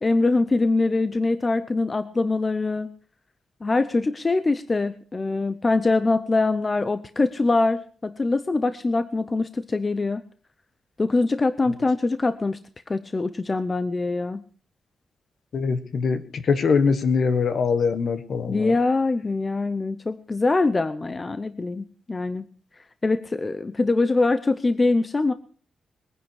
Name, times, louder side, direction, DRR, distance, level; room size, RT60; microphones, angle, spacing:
voice 1, 0.0-2.9 3.6-10.2 11.0-12.6 12.9-14.4 18.5-22.4 23.0-25.3, left 3 dB, 25° left, 11 dB, 0.7 m, -23 dB
voice 2, 15.5-18.7, left 5 dB, 55° left, 11 dB, 1.5 m, -23 dB
21.5 x 10.0 x 4.8 m, 0.42 s
wide cardioid pair, 150°, 0 cm